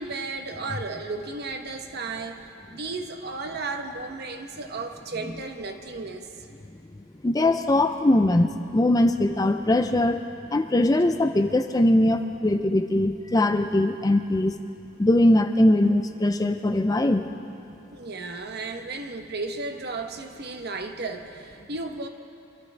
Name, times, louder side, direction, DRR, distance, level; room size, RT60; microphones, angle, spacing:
voice 1, 0.0-6.3 17.9-22.1, right 3 dB, 50° right, 5 dB, 1.0 m, -34 dB
voice 2, 7.2-10.2 10.5-14.6 15.0-17.3, left 1 dB, 20° left, 7 dB, 0.4 m, -21 dB
25.0 x 13.0 x 3.3 m, 2.7 s
head